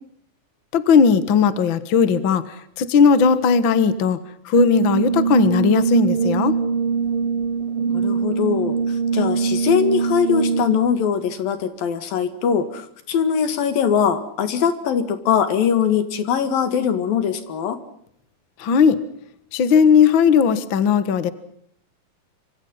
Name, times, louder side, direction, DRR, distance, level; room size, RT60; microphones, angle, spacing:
voice 1, 0.7-4.2 4.4-6.5 18.6-19.0 19.5-21.3, left 6 dB, 50° left, 14 dB, 1.5 m, -17 dB
Brass instrument, 4.5-10.9, right 5 dB, 70° right, 2.9 m, -22 dB
voice 2, 7.9-8.8 9.1-17.8, left 7 dB, 75° left, 11 dB, 3.8 m, -21 dB
27.0 x 25.5 x 5.6 m, 0.67 s
omnidirectional pair, 4.2 m